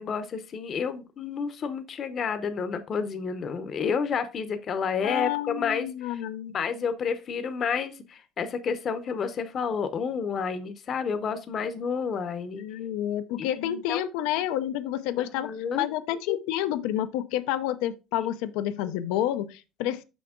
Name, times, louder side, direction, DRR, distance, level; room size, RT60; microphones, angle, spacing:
voice 1, 0.0-5.9 6.1-6.2 6.5-12.6 13.4-14.0 15.2-15.8 18.2-18.3, left 6 dB, 35° left, 0.7 m, -30 dB
voice 2, 5.0-6.5 12.6-15.5 15.7-20.0, left 12 dB, 90° left, 0.6 m, -29 dB
6.1 x 5.8 x 3.6 m
cardioid pair, 155°, 0 cm